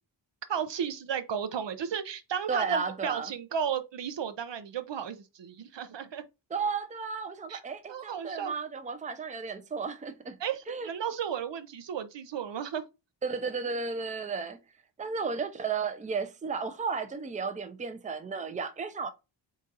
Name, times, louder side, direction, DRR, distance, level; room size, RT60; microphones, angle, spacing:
voice 1, 0.5-6.3 7.5-7.6 7.9-8.5 10.4-12.9, right 8 dB, 65° right, 0.6 m, -34 dB
voice 2, 2.5-3.3 6.5-10.4 10.7-10.9 13.2-14.6 15.0-19.1, right 5 dB, 15° right, 0.5 m, -33 dB
4.0 x 2.4 x 3.9 m
wide cardioid pair, 65°, 46 cm